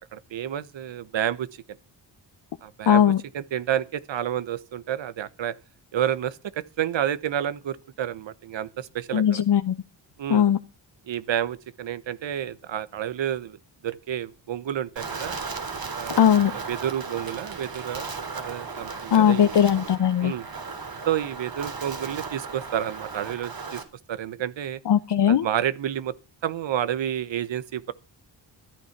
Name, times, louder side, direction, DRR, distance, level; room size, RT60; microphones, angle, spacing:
voice 1, 0.1-1.5 2.6-5.5 5.9-9.4 10.2-10.4 11.1-15.4 15.9-16.2 16.5-19.5 20.2-20.5 21.1-24.8 25.3-26.1 26.4-27.9, right 10 dB, 80° right, 1.1 m, -30 dB
voice 2, 2.9-3.2 9.1-9.8 10.3-10.6 16.1-16.5 19.1-20.3 24.9-25.5, left 9 dB, 65° left, 0.9 m, -19 dB
Wind, 15.0-23.8, right 4 dB, 55° right, 3.2 m, -36 dB
13.5 x 9.8 x 5.9 m
cardioid pair, 75°, 44 cm